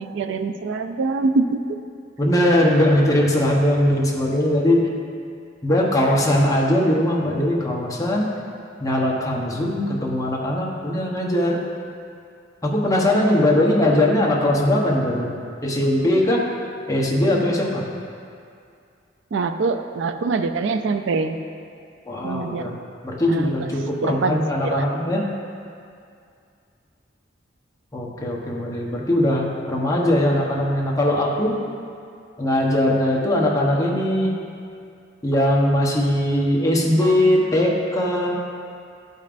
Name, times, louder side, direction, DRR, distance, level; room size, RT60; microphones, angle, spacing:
voice 1, 0.0-1.6 19.3-21.4 22.2-22.8 23.3-23.5 24.0-24.4 24.6-24.9, right 3 dB, 70° right, 8 dB, 0.4 m, -24 dB
voice 2, 2.2-4.8 5.6-8.3 8.8-11.6 12.6-15.3 15.6-16.4 16.9-17.8 22.1-22.7 23.0-25.2 27.9-31.6 32.4-34.3 35.2-38.4, left 1 dB, 20° left, -3 dB, 0.9 m, -20 dB
12.5 x 5.3 x 2.5 m, 2.4 s
head